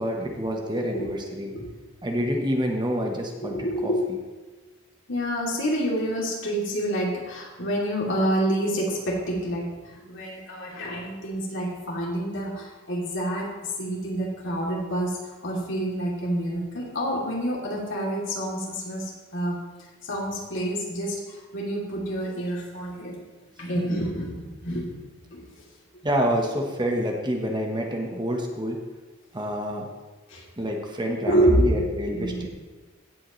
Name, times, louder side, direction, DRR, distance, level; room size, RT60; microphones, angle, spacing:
voice 1, 0.0-1.5 2.0-3.6 3.8-3.9 26.0-28.8 29.3-29.9 30.6-32.5, equal, 20° right, 1 dB, 1.2 m, -27 dB
voice 2, 0.7-1.1 1.5-1.7 3.4-4.0 5.1-19.6 20.0-23.2 23.6-25.0 25.3-25.6 30.3-30.4 31.2-32.5, right 1 dB, 60° left, -3 dB, 2.9 m, -28 dB
16.5 x 7.8 x 3.2 m, 1.3 s
head